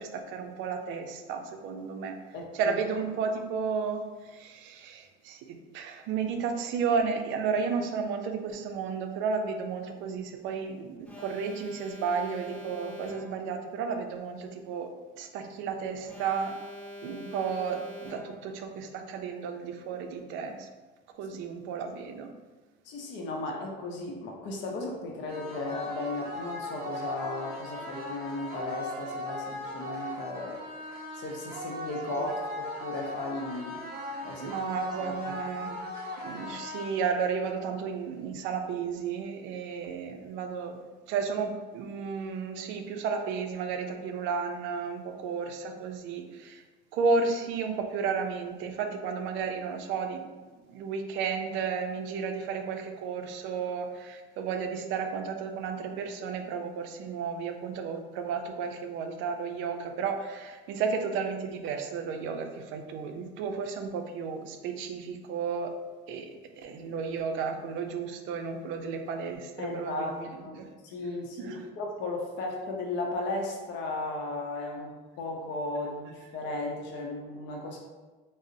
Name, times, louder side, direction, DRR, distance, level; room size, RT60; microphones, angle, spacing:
voice 1, 0.0-2.2 2.5-14.9 15.2-16.6 17.0-20.7 21.2-22.3 32.2-32.3 34.4-35.8 36.2-46.6 46.9-50.2 50.7-65.7 66.1-70.3 70.6-70.7 71.4-71.6, right 5 dB, 70° right, 5 dB, 0.4 m, -33 dB
voice 2, 2.3-2.8 22.8-30.6 31.1-33.8 34.2-34.5 35.0-35.4 69.6-77.8, left 2 dB, 65° left, 0 dB, 0.6 m, -35 dB
Alarm, 11.1-13.6 16.1-18.6, left 1 dB, 5° left, 0.5 m, -44 dB
sound 1, 25.3-37.3, left 1 dB, 50° right, 0.8 m, -38 dB
3.8 x 2.0 x 2.5 m, 1.3 s
cardioid pair, 120°, 21 cm